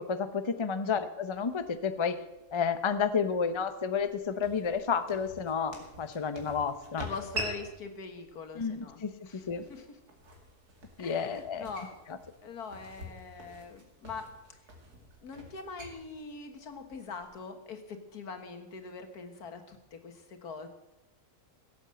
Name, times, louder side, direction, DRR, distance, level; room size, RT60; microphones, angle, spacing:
voice 1, 0.0-2.2 2.5-7.0 8.5-9.6 11.0-11.7, left 6 dB, 30° left, 10 dB, 0.6 m, -31 dB
sound 1, 1.3-17.4, right 1 dB, 85° right, 2.9 m, -46 dB
voice 2, 7.0-10.0 11.0-11.9 12.4-14.3 15.2-20.7, left 4 dB, 80° left, 7 dB, 2.0 m, -43 dB
16.5 x 8.1 x 7.7 m, 0.96 s
omnidirectional pair, 1.6 m